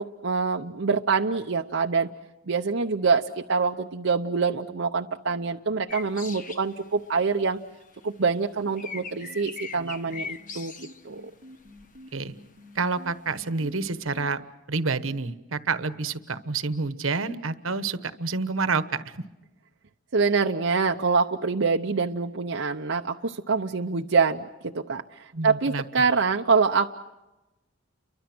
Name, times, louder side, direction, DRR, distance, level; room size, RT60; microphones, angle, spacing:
voice 1, 0.0-2.1 2.5-7.6 8.0-10.7 11.0-11.3 20.1-26.9, right 4 dB, 70° right, 3 dB, 0.8 m, -25 dB
sound 1, 5.9-7.5 7.8-12.2 12.8-12.9 13.4-14.2, left 5 dB, 40° left, 1.5 m, -40 dB
sound 2, 7.9-14.3, left 1 dB, 45° right, 2.2 m, -49 dB
voice 2, 12.7-14.4 14.7-19.2 25.3-25.8, right 4 dB, 90° right, 12 dB, 1.2 m, -28 dB
30.0 x 24.0 x 6.1 m, 1.0 s
head